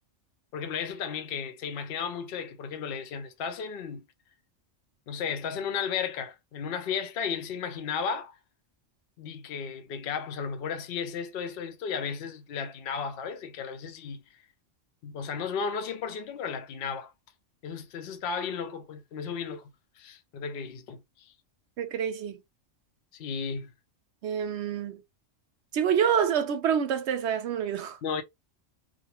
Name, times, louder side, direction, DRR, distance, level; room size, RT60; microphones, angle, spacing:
voice 1, 0.5-4.0 5.1-8.3 9.2-14.2 15.0-17.1 17.6-19.7 20.0-21.3 23.1-23.7 28.0-28.2, left 6 dB, 60° left, 0.7 m, -34 dB
voice 2, 21.8-22.4 24.2-25.0 25.7-28.0, right 8 dB, 70° right, 0.8 m, -27 dB
2.6 x 2.2 x 2.9 m
omnidirectional pair, 1.3 m